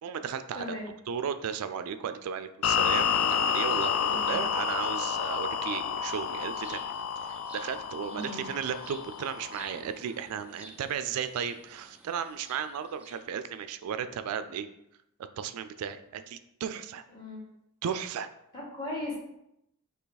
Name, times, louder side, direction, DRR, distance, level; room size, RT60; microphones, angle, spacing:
voice 1, 0.0-0.7 1.1-6.9 7.2-14.7 15.4-17.0 17.8-18.3, right 7 dB, 75° right, 12 dB, 0.3 m, -35 dB
voice 2, 0.5-0.9 4.1-4.4 8.1-8.4 17.1-17.4 18.5-19.2, left 1 dB, 20° left, -6 dB, 1.6 m, -37 dB
sound 1, 2.6-9.8, left 7 dB, 70° left, 0.3 m, -30 dB
sound 2, 6.1-13.8, right 1 dB, 5° right, 0.4 m, -53 dB
4.5 x 2.8 x 4.0 m, 0.80 s
head